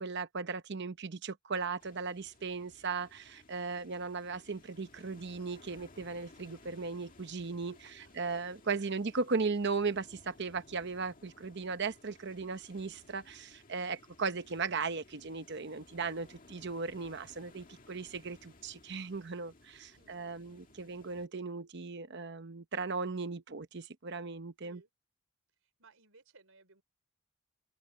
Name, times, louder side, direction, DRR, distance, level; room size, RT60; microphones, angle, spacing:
voice 1, 0.0-24.8, right 4 dB, 55° right, 0.9 m, -37 dB
sound 1, 1.8-21.3, left 2 dB, 40° left, 2.0 m, -59 dB
voice 2, 7.6-8.1 8.8-9.0 19.9-20.8 24.6-24.9 25.6-26.8, right 3 dB, 70° right, 4.3 m, -63 dB
open air
head